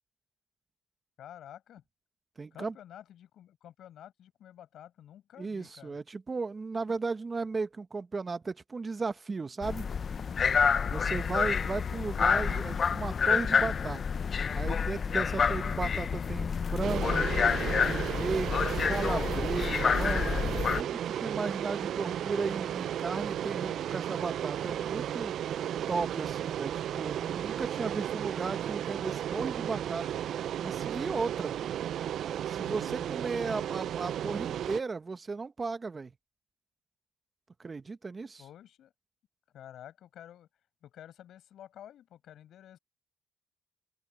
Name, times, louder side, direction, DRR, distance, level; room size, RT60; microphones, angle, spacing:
voice 1, 1.2-1.8 2.5-6.0 11.0-11.5 32.6-33.0 38.4-38.9 39.5-40.5 40.8-42.8, left 11 dB, 75° left, 7.0 m, -50 dB
voice 2, 2.4-2.7 5.4-9.9 10.9-14.0 14.5-17.3 17.8-20.5 20.7-25.3 25.9-30.1 30.6-31.5 32.5-36.1 37.6-38.4, right 4 dB, 30° right, 1.1 m, -35 dB
sound 1, 9.6-20.8, left 6 dB, 45° left, 0.6 m, -28 dB
sound 2, 16.8-34.8, right 10 dB, 70° right, 0.3 m, -34 dB
open air
cardioid pair, 90°, 0 cm